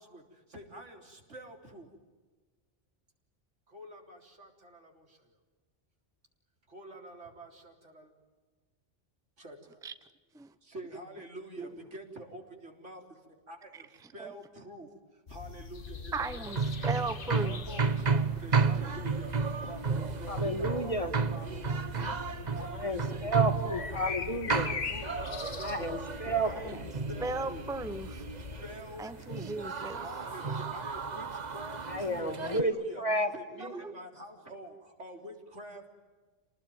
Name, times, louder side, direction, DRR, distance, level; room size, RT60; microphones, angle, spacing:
voice 1, 0.0-1.9 3.7-5.4 6.7-8.1 9.4-9.8 10.6-16.5 17.4-20.9 21.3-22.2 22.5-23.3 23.7-24.2 24.5-25.9 26.2-26.8 27.1-27.6 28.3-29.5 30.0-33.0 33.3-35.9, right 1 dB, 80° right, 2 dB, 4.0 m, -47 dB
sound 1, 15.3-32.2, left 5 dB, 50° left, 1.4 m, -43 dB
voice 2, 16.1-16.6 16.8-17.6 27.2-28.2 29.0-30.0 33.7-33.9, right 3 dB, 5° right, 11 dB, 0.8 m, -36 dB
sound 2, 16.5-32.6, right 5 dB, 40° right, 1.1 m, -33 dB
voice 3, 20.3-21.1 22.7-24.7 25.6-26.8 31.8-33.3 33.6-33.7, right 1 dB, 30° left, 7 dB, 2.0 m, -31 dB
29.0 x 19.5 x 9.4 m, 1.3 s
omnidirectional pair, 1.2 m